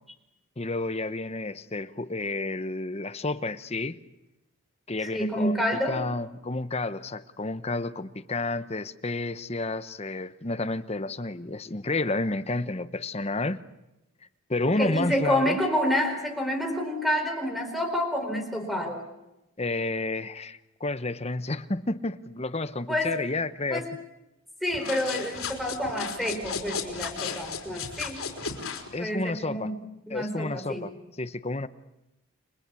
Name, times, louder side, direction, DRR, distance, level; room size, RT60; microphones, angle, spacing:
voice 1, 0.6-4.0 4.9-5.6 5.9-13.6 14.5-15.6 19.6-23.9 28.9-29.7 30.1-30.9 31.2-31.7, left 2 dB, 30° left, 12 dB, 0.9 m, -30 dB
voice 2, 5.0-6.0 14.6-19.0 22.9-23.2 23.7-23.9 24.6-28.2 29.0-30.9, equal, ahead, 5 dB, 4.5 m, -28 dB
sound 1, 24.7-28.9, left 5 dB, 85° left, 4.5 m, -35 dB
30.0 x 23.0 x 8.4 m, 0.94 s
head